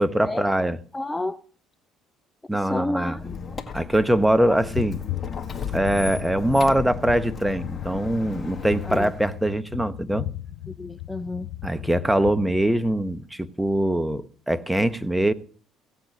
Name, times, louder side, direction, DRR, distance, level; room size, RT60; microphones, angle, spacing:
voice 1, 0.0-0.8 2.5-3.2 3.7-5.0 5.7-10.2 11.6-15.3, right 1 dB, 5° right, 1.0 m, -22 dB
voice 2, 0.9-1.4 2.5-3.3 4.5-4.6 8.8-9.1 10.8-11.5, left 2 dB, 15° left, 0.6 m, -30 dB
Squeak, 3.1-9.5, left 6 dB, 35° left, 1.9 m, -36 dB
sound 1, 4.5-12.6, left 14 dB, 80° left, 1.0 m, -35 dB
16.5 x 8.0 x 6.1 m
supercardioid pair, 70°, 0 cm